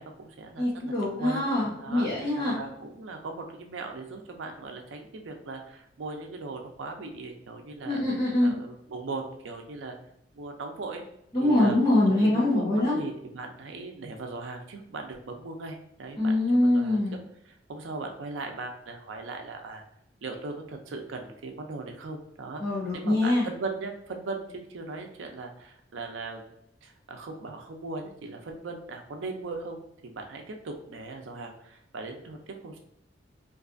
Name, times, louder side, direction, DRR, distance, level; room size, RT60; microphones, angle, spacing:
voice 1, 0.0-0.9 1.2-1.4 1.8-8.0 8.4-10.0 10.3-11.0 11.4-11.8 12.2-16.3 16.6-17.0 17.5-19.8 20.2-26.5 26.8-32.8, right 3 dB, 85° right, 4 dB, 0.5 m, -39 dB
voice 2, 0.6-2.5 7.8-8.5 11.3-13.0 16.2-17.2 22.6-23.5, left 1 dB, 25° left, -9 dB, 0.7 m, -24 dB
2.6 x 2.4 x 2.4 m, 0.77 s
head